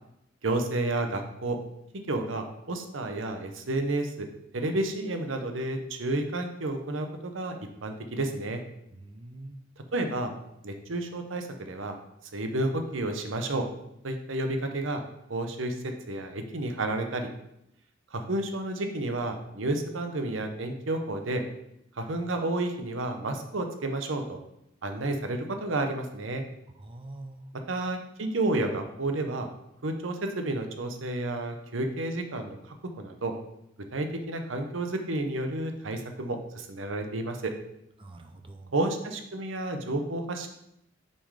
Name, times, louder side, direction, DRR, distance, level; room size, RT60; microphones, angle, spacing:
voice 1, 0.4-1.6 2.1-4.3 4.5-8.6 9.9-10.3 10.6-12.0 12.3-13.7 14.0-15.0 15.3-15.8 16.1-17.3 18.1-21.4 22.0-24.4 24.8-26.4 27.7-29.5 29.8-32.6 33.0-33.3 33.9-37.5 38.7-40.5, right 2 dB, 85° right, 5 dB, 0.9 m, -31 dB
voice 2, 8.9-9.6 26.8-27.4 38.0-38.7, right 2 dB, 30° right, 6 dB, 0.6 m, -44 dB
6.2 x 4.5 x 4.9 m, 0.81 s
head